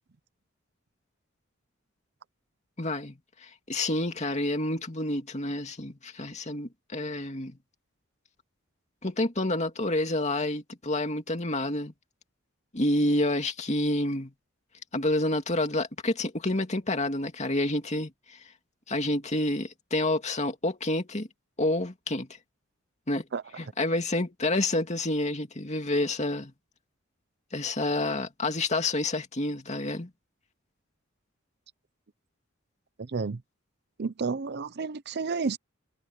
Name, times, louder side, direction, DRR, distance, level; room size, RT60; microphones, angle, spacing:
voice 1, 2.8-7.6 9.0-11.9 12.7-14.3 14.9-18.1 18.9-21.3 21.6-22.3 23.1-23.2 23.6-26.5 27.5-30.1, left 2 dB, 35° left, 2.4 m, -28 dB
voice 2, 33.0-33.4 34.0-35.6, right 4 dB, 55° right, 0.6 m, -31 dB
head